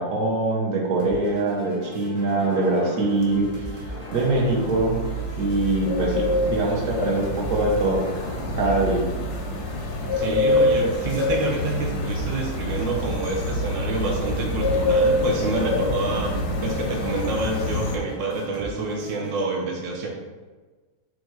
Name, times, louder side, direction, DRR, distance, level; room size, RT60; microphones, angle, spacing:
voice 1, 0.0-5.0 5.4-8.0 8.6-9.0, right 2 dB, 55° right, -2 dB, 1.0 m, -23 dB
sound 1, 1.0-19.5, left 1 dB, 25° right, 0.9 m, -41 dB
sound 2, 2.3-3.4 3.8-9.0, left 2 dB, 55° left, 0.6 m, -41 dB
sound 3, 3.3-18.0, left 1 dB, 85° left, 1.5 m, -26 dB
voice 2, 10.1-20.1, right 3 dB, 90° right, -1 dB, 0.6 m, -28 dB
4.6 x 2.5 x 4.5 m, 1.3 s
omnidirectional pair, 2.2 m